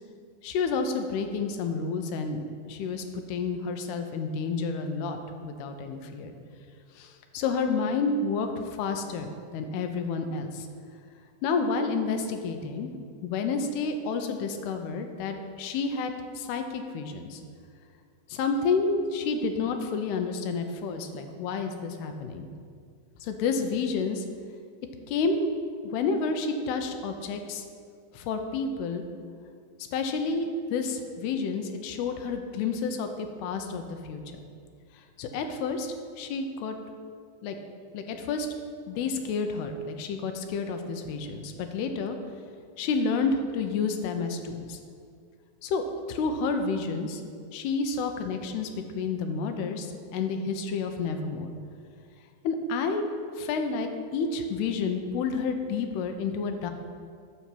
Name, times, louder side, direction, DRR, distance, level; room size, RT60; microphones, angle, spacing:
voice 1, 0.4-2.4 2.7-6.3 7.0-8.5 8.8-10.7 11.4-12.9 13.2-17.4 18.3-22.5 23.2-24.2 25.1-25.5 25.8-27.6 28.1-29.0 29.9-34.2 35.2-36.8 37.4-37.6 37.9-38.5 38.9-42.2 42.8-44.8 45.6-47.2 47.5-48.7 49.0-49.9 50.1-51.5 52.4-53.0 53.4-56.7, left 4 dB, 80° left, 6 dB, 2.8 m, -30 dB
9.9 x 7.2 x 5.8 m, 2.2 s
omnidirectional pair, 4.7 m